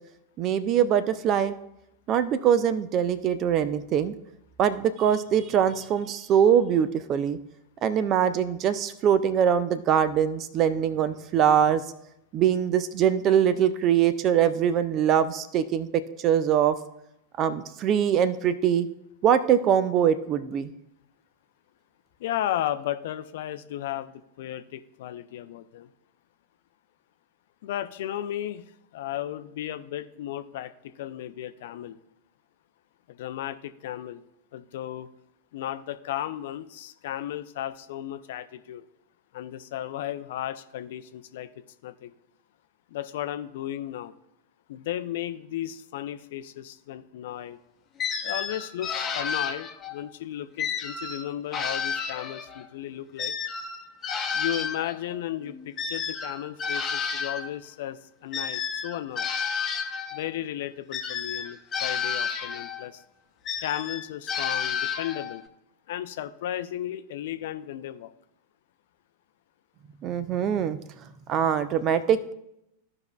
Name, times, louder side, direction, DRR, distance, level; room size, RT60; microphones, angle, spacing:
voice 1, 0.4-1.5 2.1-4.1 4.6-7.4 7.8-11.8 12.3-15.9 16.2-16.8 17.4-18.9 19.2-20.7 70.0-70.8 71.3-72.3, right 9 dB, 35° right, 13 dB, 0.5 m, -23 dB
voice 2, 22.2-25.9 27.6-28.7 28.9-30.7 31.0-32.0 33.1-34.2 34.5-35.1 35.5-38.8 39.3-41.5 41.8-42.1 42.9-44.1 44.7-47.6 48.2-53.4 54.3-59.3 60.1-63.0 63.6-65.4 65.9-68.1, left 12 dB, 55° left, 11 dB, 0.5 m, -34 dB
sound 1, 48.0-50.0 50.6-52.7 53.2-57.5 58.3-60.3 60.9-62.9 63.5-65.4, left 6 dB, 25° left, 0.9 m, -31 dB
15.0 x 5.3 x 2.3 m, 0.82 s
figure-of-eight pair, 90°, 0 cm